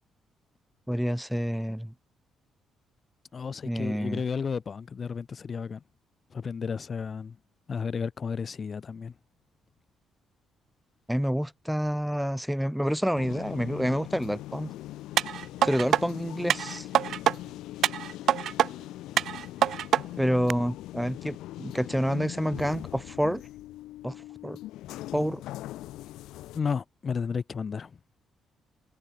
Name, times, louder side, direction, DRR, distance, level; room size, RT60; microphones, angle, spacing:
voice 1, 0.9-1.9 3.6-4.2 11.1-14.7 15.6-16.9 20.2-23.4 24.0-24.2 24.4-24.6 25.1-25.4, equal, ahead, 1.7 m, -28 dB
voice 2, 3.3-5.8 6.3-7.4 7.7-9.1 26.5-28.0, left 6 dB, 40° left, 1.1 m, -33 dB
sound 1, 13.1-26.6, left 15 dB, 90° left, 4.3 m, -41 dB
sound 2, 15.2-16.0 16.5-17.4 17.8-18.7 19.2-20.0 20.5-20.6, right 10 dB, 70° right, 0.5 m, -24 dB
cardioid pair, 90°, 0 cm